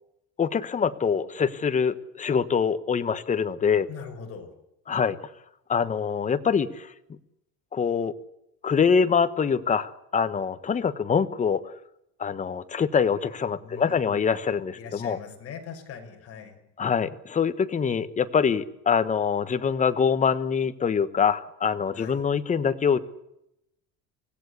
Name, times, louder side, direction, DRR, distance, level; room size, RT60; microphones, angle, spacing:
voice 1, 0.4-3.9 4.9-5.2 5.7-6.9 7.7-8.1 8.6-11.7 12.2-15.2 16.8-23.0, left 6 dB, 20° left, 11 dB, 1.3 m, -24 dB
voice 2, 3.9-4.5 13.6-14.4 14.8-16.6 21.9-22.3, left 6 dB, 45° left, 4 dB, 5.9 m, -41 dB
25.5 x 17.5 x 8.3 m, 0.83 s
cardioid pair, 170°, 33 cm